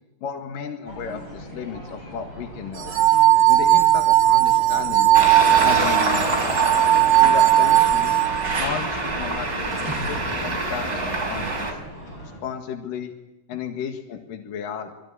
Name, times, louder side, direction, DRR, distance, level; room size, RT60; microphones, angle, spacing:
voice 1, 0.2-2.9 3.5-5.2 5.6-6.6 7.2-8.2 8.6-11.8 12.2-13.1 13.5-14.9, left 7 dB, 75° left, 4 dB, 3.4 m, -33 dB
sound 1, 0.9-12.4, equal, 30° left, 8.7 m, -39 dB
sound 2, 2.8-8.6, right 13 dB, 65° right, 3.5 m, -17 dB
Traffic noise roadway noise, 5.1-11.7, right 2 dB, 25° right, 5.2 m, -26 dB
25.5 x 22.0 x 9.7 m, 1.0 s
omnidirectional pair, 4.0 m